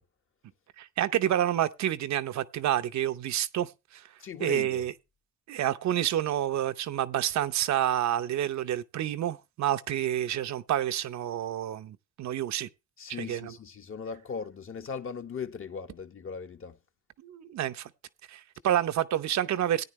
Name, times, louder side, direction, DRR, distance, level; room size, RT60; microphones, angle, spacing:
voice 1, 0.8-4.0 4.4-4.9 5.5-12.7 13.2-13.5 17.2-17.9 18.3-19.8, right 11 dB, 65° right, 0.7 m, -29 dB
voice 2, 4.2-4.9 13.0-16.8, left 6 dB, 45° left, 1.2 m, -38 dB
14.5 x 9.5 x 3.1 m
cardioid pair, 90°, 30 cm